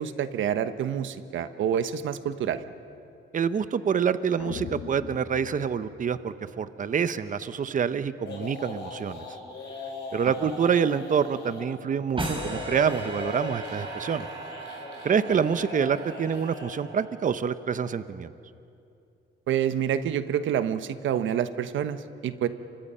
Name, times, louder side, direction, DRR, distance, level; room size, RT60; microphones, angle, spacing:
voice 1, 0.0-2.6 19.5-22.5, right 9 dB, 75° right, 11 dB, 1.1 m, -27 dB
voice 2, 3.3-9.2 10.1-14.3 15.0-18.3, right 7 dB, 40° right, 13 dB, 0.9 m, -26 dB
sound 1, 4.4-6.7, left 8 dB, 75° left, 1.2 m, -41 dB
sound 2, 8.2-11.7 12.2-16.8, left 4 dB, 60° left, 5.2 m, -39 dB
sound 3, 12.2-17.4, right 2 dB, 25° right, 4.7 m, -37 dB
29.5 x 24.5 x 5.6 m, 2.6 s
cardioid pair, 90°, 20 cm